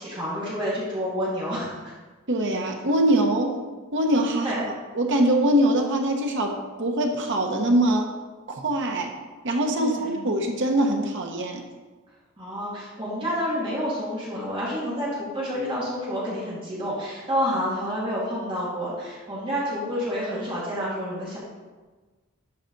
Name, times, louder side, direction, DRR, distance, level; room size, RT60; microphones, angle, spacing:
voice 1, 0.0-1.9 4.4-4.7 9.7-10.2 12.4-21.4, equal, 25° right, -7 dB, 2.2 m, -29 dB
voice 2, 2.3-3.5 3.9-4.5 4.9-8.1 8.5-9.1 9.4-11.6, right 1 dB, 60° right, 3 dB, 1.1 m, -23 dB
11.0 x 4.9 x 4.1 m, 1.3 s
head